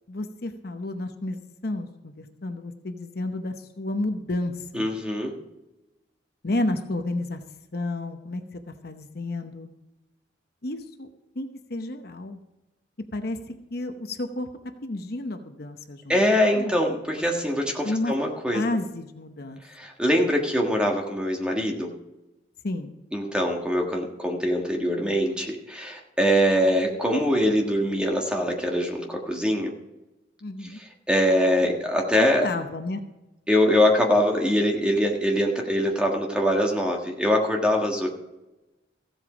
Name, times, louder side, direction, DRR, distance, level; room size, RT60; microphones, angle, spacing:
voice 1, 0.1-4.9 6.4-7.4 7.7-9.7 10.6-11.1 11.3-12.4 13.1-14.5 14.8-16.2 16.5-16.8 17.8-18.1 18.5-19.6 22.6-22.9 30.4-30.8 32.2-33.0, left 2 dB, 50° left, 7 dB, 0.8 m, -31 dB
voice 2, 4.7-5.4 16.1-18.6 19.7-21.9 23.1-29.7 30.7-32.5 33.5-38.1, equal, 5° right, 0 dB, 1.5 m, -23 dB
15.0 x 8.0 x 5.0 m, 1.0 s
head